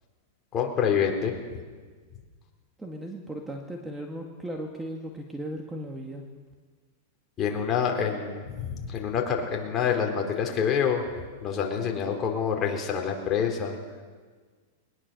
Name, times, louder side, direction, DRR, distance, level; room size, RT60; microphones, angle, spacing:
voice 1, 0.5-1.3 7.4-11.0 11.4-13.8, left 7 dB, 25° left, 1 dB, 4.2 m, -27 dB
voice 2, 2.8-6.2, right 1 dB, 10° right, 2 dB, 2.0 m, -36 dB
22.0 x 20.0 x 7.1 m, 1.5 s
supercardioid pair, 140°, 0 cm